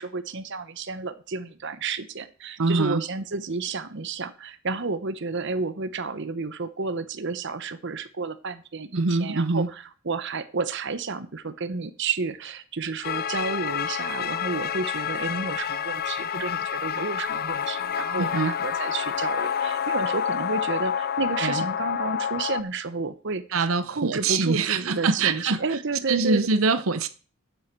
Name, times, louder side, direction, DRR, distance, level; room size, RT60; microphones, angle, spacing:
voice 1, 0.0-26.5, right 4 dB, 60° right, 0.9 m, -31 dB
voice 2, 2.6-3.0 9.0-9.7 18.2-18.5 21.4-21.6 23.5-25.6 26.1-27.1, right 4 dB, 85° right, 0.8 m, -24 dB
sound 1, 13.0-22.6, left 8 dB, 45° left, 0.5 m, -28 dB
8.0 x 7.9 x 7.4 m
head